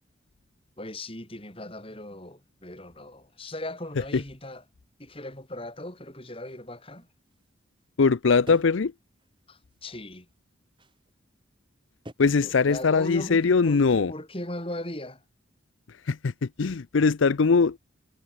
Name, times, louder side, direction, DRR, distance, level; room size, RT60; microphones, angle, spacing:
voice 1, 0.8-4.6 5.0-7.1 9.5-10.3 12.4-15.2, left 1 dB, 30° left, 6.0 m, -38 dB
sound 1, 6.4-8.1 8.5-8.9 9.2-10.4 10.8-11.2 12.1-12.2, equal, 25° right, 6.8 m, -50 dB
voice 2, 8.0-8.9 12.2-14.1 16.1-17.8, left 4 dB, 85° left, 0.6 m, -21 dB
head